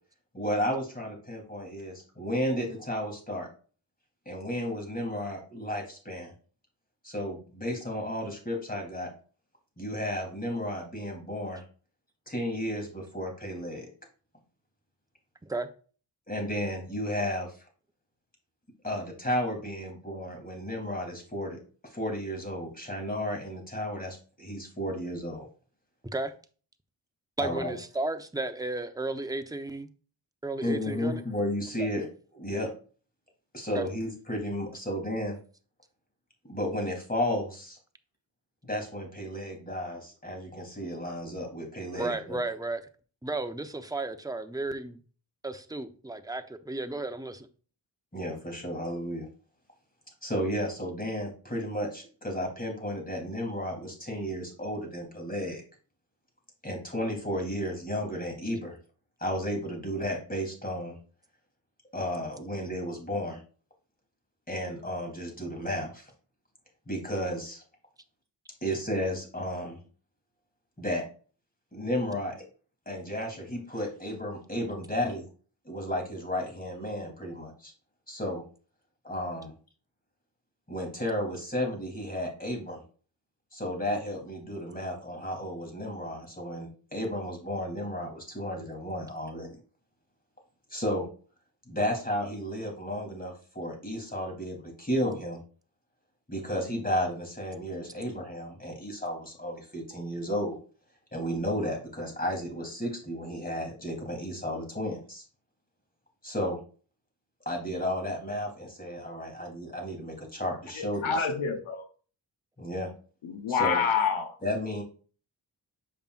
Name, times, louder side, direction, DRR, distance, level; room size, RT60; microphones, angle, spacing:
voice 1, 0.3-3.5 4.2-6.3 7.0-9.1 9.8-11.6 12.3-13.9 16.3-17.6 18.8-25.5 27.4-27.7 30.6-32.1 32.3-32.7 33.5-35.4 36.4-37.8 38.6-42.4 48.1-49.3 50.2-55.6 56.6-58.8 59.2-61.0 61.9-63.4 64.5-66.1 66.9-67.6 68.6-69.8 70.8-71.0 71.7-72.4 72.8-75.3 75.6-77.7 78.1-78.5 79.0-79.5 80.7-82.8 83.5-89.6 90.7-91.1 91.7-95.4 96.3-100.6 101.1-105.2 106.2-106.6 107.4-111.3 112.6-112.9 113.5-113.8 114.4-114.8, equal, 20° left, 3.3 m, -33 dB
voice 2, 27.4-29.9 30.4-31.2 31.8-31.9 33.7-33.9 42.0-42.8 43.2-45.0 45.4-47.5, right 2 dB, 10° right, 0.8 m, -33 dB
voice 3, 110.8-111.8 113.2-114.3, left 6 dB, 85° left, 1.0 m, -27 dB
7.2 x 5.3 x 2.5 m
cardioid pair, 45°, 47 cm